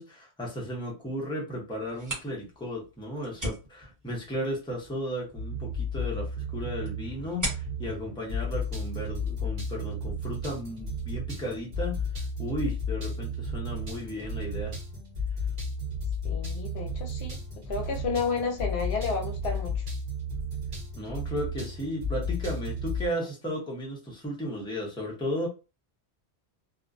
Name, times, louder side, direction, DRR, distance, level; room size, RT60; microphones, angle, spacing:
voice 1, 0.0-14.8 21.0-25.5, equal, 5° left, 0.6 m, -35 dB
sound 1, 1.8-9.3, right 1 dB, 15° right, 1.1 m, -41 dB
sound 2, 5.4-23.1, left 1 dB, 50° right, 1.0 m, -33 dB
voice 2, 16.2-17.4 17.7-19.8, left 4 dB, 70° left, 0.8 m, -31 dB
2.4 x 2.1 x 2.5 m
omnidirectional pair, 1.1 m